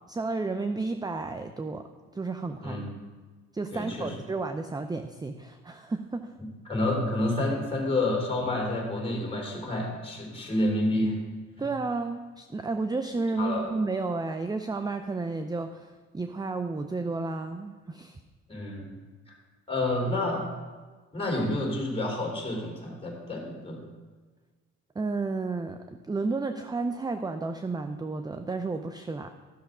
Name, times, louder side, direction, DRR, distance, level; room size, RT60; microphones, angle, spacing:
voice 1, 0.1-1.8 2.1-2.8 3.5-6.3 11.6-18.2 25.0-25.8 26.1-29.3, right 3 dB, 15° right, 8 dB, 0.5 m, -32 dB
voice 2, 3.7-4.1 6.6-11.1 11.6-11.7 13.4-13.7 18.5-18.8 19.7-20.4 21.1-23.8, left 1 dB, 20° left, -2 dB, 3.5 m, -29 dB
13.0 x 6.4 x 4.9 m, 1.4 s
cardioid pair, 90°, 30 cm